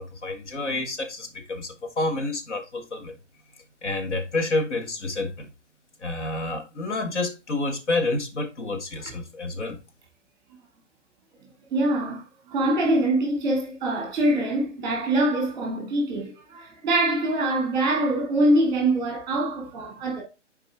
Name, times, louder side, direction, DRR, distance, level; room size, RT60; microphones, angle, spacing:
voice 1, 0.0-3.2 3.8-5.5 6.0-9.8, left 2 dB, 70° left, 1.8 m, -29 dB
voice 2, 11.7-20.2, right 1 dB, 10° right, 2.2 m, -24 dB
7.4 x 4.7 x 3.6 m
hypercardioid pair, 165°, 36 cm